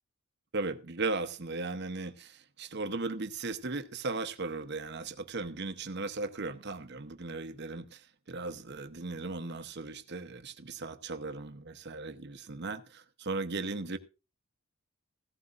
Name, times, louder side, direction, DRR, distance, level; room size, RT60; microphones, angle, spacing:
voice 1, 0.5-14.0, right 3 dB, 50° right, 0.9 m, -37 dB
16.0 x 13.5 x 2.5 m
head